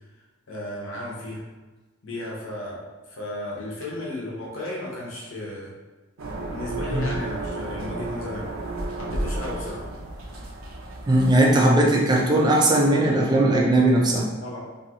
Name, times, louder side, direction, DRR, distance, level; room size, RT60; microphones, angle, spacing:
voice 1, 0.5-1.4 2.0-2.8 3.1-5.7 6.5-8.5 9.0-9.9 14.4-14.6, left 1 dB, 65° left, -3 dB, 0.7 m, -34 dB
sound 1, 6.2-11.3, right 2 dB, 70° right, 0.5 m, -32 dB
voice 2, 11.1-14.3, right 1 dB, 20° right, -2 dB, 0.4 m, -19 dB
2.6 x 2.3 x 2.8 m, 1.2 s
head